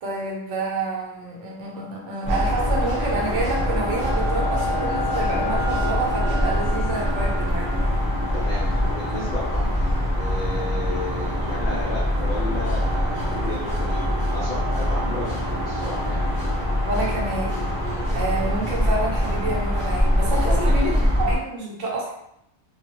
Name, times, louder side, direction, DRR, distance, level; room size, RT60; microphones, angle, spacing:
voice 1, 0.0-8.1 16.9-17.7 18.1-20.9 21.2-22.1, right 2 dB, 70° right, -2 dB, 1.0 m, -28 dB
sound 1, 2.2-21.4, left 1 dB, 5° left, 0.8 m, -23 dB
Wind instrument woodwind instrument, 3.7-7.9, right 2 dB, 45° left, 0.7 m, -38 dB
voice 2, 8.3-16.3 20.3-21.0, left 2 dB, 85° left, -6 dB, 0.3 m, -33 dB
sound 2, 12.7-13.9 14.4-15.1 17.0-17.2, right 1 dB, 50° right, 0.5 m, -44 dB
2.3 x 2.1 x 2.8 m, 0.77 s
omnidirectional pair, 1.3 m